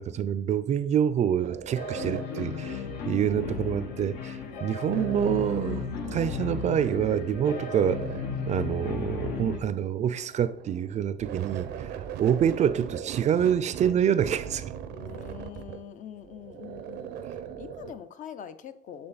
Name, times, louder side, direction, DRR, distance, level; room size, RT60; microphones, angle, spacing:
voice 1, 0.0-8.0 8.5-11.7 12.2-14.6, right 9 dB, 45° right, 0.4 m, -26 dB
sound 1, 1.4-4.2 4.9-7.1 7.3-9.1 10.2-17.9, right 9 dB, 85° right, 0.6 m, -40 dB
sound 2, 1.7-9.6, left 5 dB, 85° left, 1.0 m, -34 dB
voice 2, 11.4-12.2 14.9-17.2 17.6-19.1, left 8 dB, 50° left, 0.5 m, -44 dB
7.7 x 3.4 x 4.0 m
cardioid pair, 110°, 17 cm